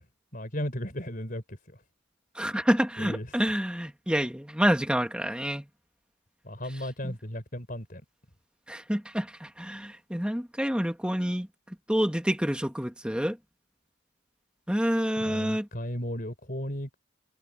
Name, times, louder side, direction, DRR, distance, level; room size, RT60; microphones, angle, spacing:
voice 1, 0.3-1.6 3.0-3.3 6.4-8.0 15.2-16.9, equal, 40° left, 4.5 m, -35 dB
voice 2, 2.4-5.7 7.0-7.1 8.7-11.5 11.9-13.4 14.7-15.7, equal, 5° right, 2.1 m, -28 dB
head